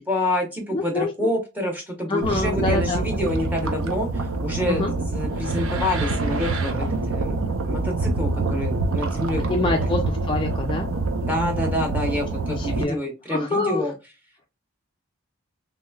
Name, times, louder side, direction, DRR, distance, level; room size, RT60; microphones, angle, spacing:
voice 1, 0.1-7.3 7.6-9.6 11.2-13.9, left 1 dB, 5° right, 0 dB, 0.8 m, -27 dB
voice 2, 0.7-1.1 2.1-3.1 4.7-4.9 9.5-10.9 12.6-13.0 13.3-13.8, left 2 dB, 20° left, 2 dB, 0.3 m, -25 dB
sound 1, 2.2-12.8, right 2 dB, 65° right, 0.5 m, -26 dB
3.1 x 2.9 x 2.2 m, 0.26 s
head